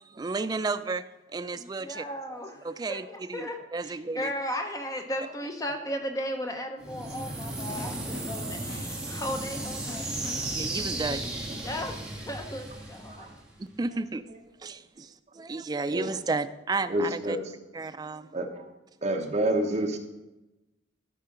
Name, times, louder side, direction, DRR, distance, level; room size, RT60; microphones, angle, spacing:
voice 1, 0.0-2.1 2.6-4.3 10.4-11.7 13.6-14.2 14.6-17.4 17.7-18.3, right 3 dB, 20° right, 11 dB, 0.3 m, -33 dB
voice 2, 1.6-2.6 2.9-3.6 3.8-10.1 11.6-12.0 12.3-13.3, equal, 20° left, 5 dB, 0.6 m, -35 dB
sound 1, 6.8-13.7, right 2 dB, 5° right, 1.6 m, -35 dB
sound 2, 7.6-10.8, left 2 dB, 50° left, 1.5 m, -45 dB
voice 3, 16.9-17.4 18.3-18.7 19.0-20.0, right 1 dB, 35° right, 3 dB, 1.0 m, -28 dB
12.5 x 5.6 x 3.8 m, 0.99 s
head